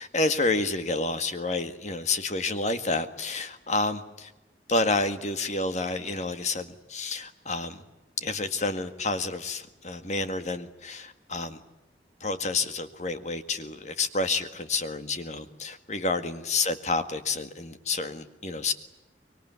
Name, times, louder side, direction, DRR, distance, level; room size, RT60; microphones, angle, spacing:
voice 1, 0.0-4.3 4.7-7.8 8.2-11.6 12.2-18.7, left 3 dB, 40° left, 9 dB, 1.9 m, -29 dB
25.0 x 22.5 x 9.5 m, 1.0 s
head